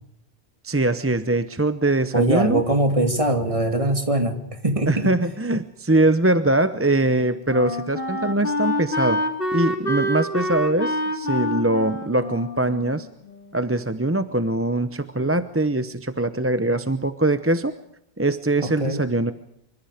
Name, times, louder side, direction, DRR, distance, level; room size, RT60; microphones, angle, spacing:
voice 1, 0.6-2.6 4.9-9.2 9.5-13.1 13.5-17.7 18.2-19.3, right 2 dB, 15° right, 11 dB, 0.7 m, -22 dB
voice 2, 2.1-5.1 18.6-19.1, right 1 dB, 30° right, 6 dB, 2.8 m, -22 dB
Wind instrument woodwind instrument, 6.5-13.8, left 1 dB, 60° left, 3.4 m, -27 dB
26.5 x 25.0 x 5.0 m, 0.79 s
omnidirectional pair, 1.1 m